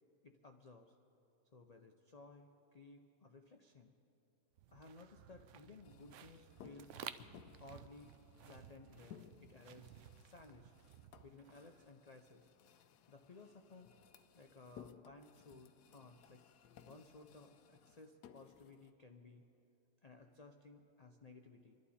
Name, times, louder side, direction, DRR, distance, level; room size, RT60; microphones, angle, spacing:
voice 1, 0.2-1.0 1.5-3.9 4.7-6.9 7.6-8.1 8.4-10.0 10.2-10.7 11.2-12.4 13.1-13.9 14.3-16.4 16.9-19.4 20.0-21.8, left 3 dB, 50° left, 4 dB, 0.4 m, -58 dB
sound 1, 4.6-11.8, right 10 dB, 70° right, 0.7 m, -55 dB
sound 2, 5.8-18.9, left 9 dB, 80° left, 1.2 m, -61 dB
27.0 x 11.5 x 4.3 m, 2.9 s
omnidirectional pair, 1.7 m